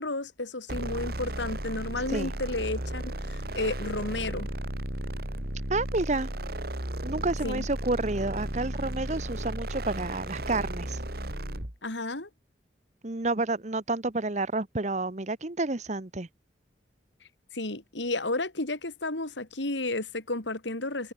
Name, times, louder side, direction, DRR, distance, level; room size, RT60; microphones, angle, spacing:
voice 1, 0.0-4.5 7.4-7.7 11.8-12.3 17.5-21.1, left 2 dB, 85° left, 3.5 m, -32 dB
sound 1, 0.7-11.8, right 1 dB, 55° right, 3.4 m, -34 dB
voice 2, 5.7-6.3 7.0-11.0 13.0-16.3, right 2 dB, 40° right, 1.1 m, -30 dB
head